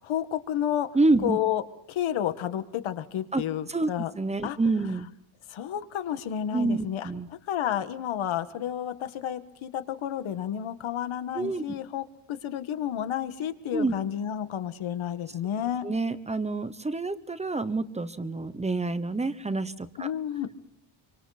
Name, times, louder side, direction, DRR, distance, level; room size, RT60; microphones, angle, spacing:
voice 1, 0.0-0.9 1.2-1.6 1.9-4.1 4.4-4.6 5.5-7.1 7.5-15.9 20.0-20.5, left 10 dB, 80° left, 10 dB, 1.8 m, -31 dB
voice 2, 0.9-1.4 3.3-3.4 3.7-3.9 4.2-5.1 6.5-7.3 11.3-11.6 13.7-13.9 15.8-20.1, right 3 dB, 15° right, 13 dB, 1.0 m, -27 dB
26.5 x 25.0 x 4.3 m, 0.76 s
cardioid pair, 160°, 48 cm